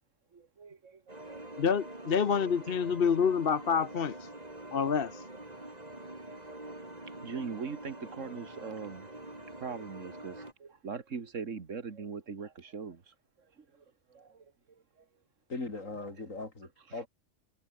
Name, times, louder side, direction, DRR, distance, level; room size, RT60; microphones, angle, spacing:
voice 1, 0.3-1.4 2.6-2.7 7.2-9.2 9.6-13.1 13.7-13.8 14.1-14.5 16.9-17.0, right 5 dB, 75° right, 2.1 m, -41 dB
sound 1, 1.1-10.5, right 1 dB, 30° right, 4.1 m, -46 dB
voice 2, 1.6-4.1 4.7-5.2, left 6 dB, 50° left, 1.1 m, -27 dB
voice 3, 15.5-17.1, left 3 dB, 85° left, 4.3 m, -39 dB
omnidirectional pair, 1.3 m